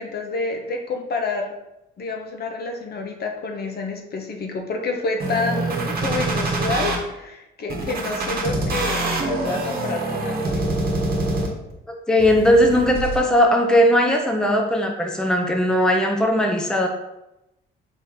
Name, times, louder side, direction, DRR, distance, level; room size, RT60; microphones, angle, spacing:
voice 1, 0.0-1.5 2.0-10.8, left 3 dB, 55° left, 3 dB, 0.8 m, -28 dB
sound 1, 5.2-7.0 7.7-11.7 12.2-13.2, right 2 dB, 50° right, 1.0 m, -25 dB
voice 2, 11.9-16.9, equal, 5° left, 2 dB, 0.5 m, -18 dB
4.1 x 3.1 x 3.8 m, 0.90 s
cardioid pair, 90°, 20 cm